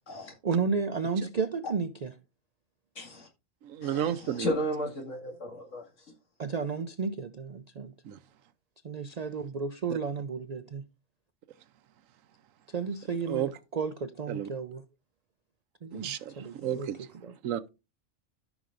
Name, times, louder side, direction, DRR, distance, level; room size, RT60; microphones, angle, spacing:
voice 1, 0.4-2.1 6.4-7.9 8.8-10.8 12.7-14.8 15.8-16.9 17.2-17.3, right 5 dB, 55° right, 0.4 m, -33 dB
voice 2, 3.0-3.3 3.8-4.0 4.4-5.8, equal, 65° left, 2.5 m, -33 dB
voice 3, 3.6-4.6 8.0-8.2 9.9-10.0 13.3-13.5 14.3-14.5 15.9-17.1 17.4-17.7, right 10 dB, 90° right, 1.1 m, -32 dB
13.5 x 6.1 x 2.5 m
omnidirectional pair, 1.4 m